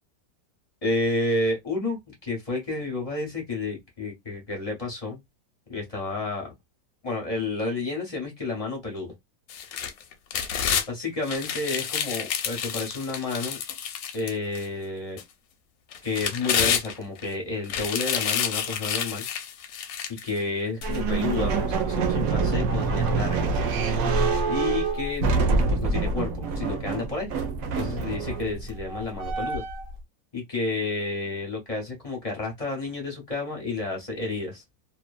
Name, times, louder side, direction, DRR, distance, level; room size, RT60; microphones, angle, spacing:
voice 1, 0.8-5.2 5.7-6.5 7.0-9.1 10.9-13.6 14.1-15.2 16.0-19.2 20.2-23.6 24.4-27.3 27.8-29.6 30.3-34.6, left 3 dB, 40° left, 0.5 m, -30 dB
sound 1, 9.5-10.9 11.3-14.7 15.2-15.3 15.9-17.3 17.6-20.3 20.8-20.9, left 8 dB, 70° left, 0.9 m, -29 dB
sound 2, 20.8-29.9, right 4 dB, 65° right, 0.9 m, -26 dB
2.7 x 2.2 x 2.4 m
omnidirectional pair, 1.9 m